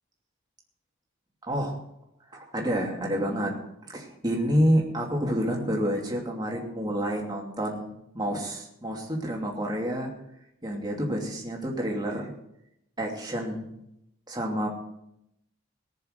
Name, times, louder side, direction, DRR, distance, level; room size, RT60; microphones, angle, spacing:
voice 1, 2.3-3.5 3.9-10.1 10.6-12.3 13.0-13.7 14.3-14.7, equal, 20° right, -1 dB, 2.7 m, -28 dB
19.0 x 6.9 x 6.6 m, 0.80 s
head